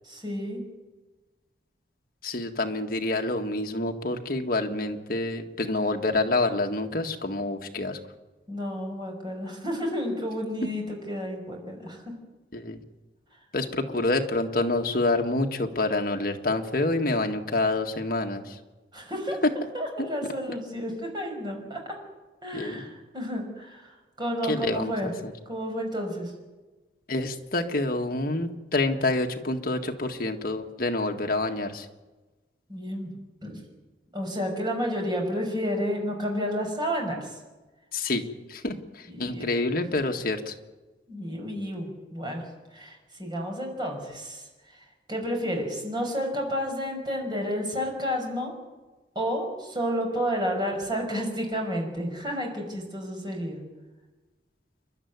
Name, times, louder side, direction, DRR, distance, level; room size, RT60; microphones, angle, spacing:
voice 1, 0.1-0.6 8.5-12.0 18.9-19.4 19.7-21.8 22.4-25.1 25.5-26.3 32.7-33.1 33.4-33.6 34.1-37.4 39.1-39.5 41.1-42.4 42.7-48.5 49.1-53.6, equal, 25° right, 1 dB, 5.7 m, -31 dB
voice 2, 2.2-8.0 12.5-12.8 13.5-18.6 22.5-22.7 24.5-25.3 27.1-31.9 37.9-38.2 38.5-40.5, left 2 dB, 50° left, 3 dB, 1.8 m, -27 dB
28.5 x 12.0 x 9.6 m, 1.2 s
head